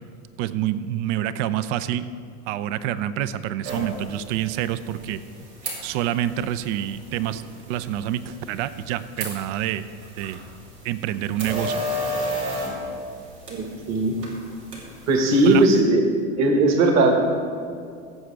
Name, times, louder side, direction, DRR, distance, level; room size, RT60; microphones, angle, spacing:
voice 1, 0.4-2.0 2.5-5.2 5.8-7.4 7.7-9.8 10.2-10.4 10.8-11.8 15.5-15.7, right 12 dB, 50° right, 14 dB, 0.6 m, -27 dB
sound 1, 3.6-15.8, equal, 90° right, 3.2 m, -34 dB
voice 2, 13.5-14.1 15.1-16.1 16.4-17.5, right 2 dB, 35° right, 3 dB, 1.5 m, -18 dB
18.0 x 7.9 x 3.4 m, 2.3 s
hypercardioid pair, 95°, 47 cm